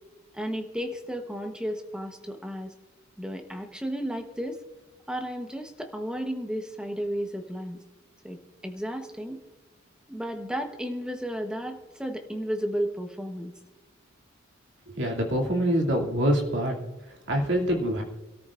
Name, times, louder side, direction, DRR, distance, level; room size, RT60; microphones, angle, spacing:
voice 1, 0.3-2.7 3.2-4.6 5.1-7.8 8.2-9.4 10.1-13.5, equal, 5° right, 5 dB, 1.1 m, -33 dB
voice 2, 15.0-16.7 17.3-18.0, equal, 60° right, 0 dB, 2.7 m, -25 dB
26.5 x 13.5 x 2.5 m, 1.1 s
head